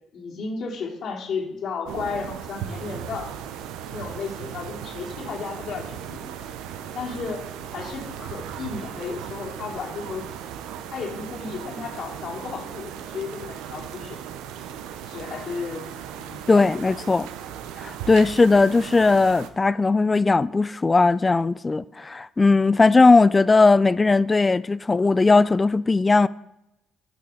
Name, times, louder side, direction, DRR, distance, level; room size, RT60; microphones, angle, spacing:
voice 1, 0.1-3.3 3.9-6.3 6.9-7.4 7.7-10.2 10.9-14.2 15.0-15.8 16.1-16.9 22.6-23.0, left 5 dB, 65° left, 2.9 m, -34 dB
sound 1, 1.8-19.5, right 9 dB, 90° right, 0.7 m, -37 dB
voice 2, 16.5-17.3 17.8-26.3, left 3 dB, 25° left, 0.3 m, -18 dB
11.0 x 6.9 x 5.0 m
cardioid pair, 85°, 0 cm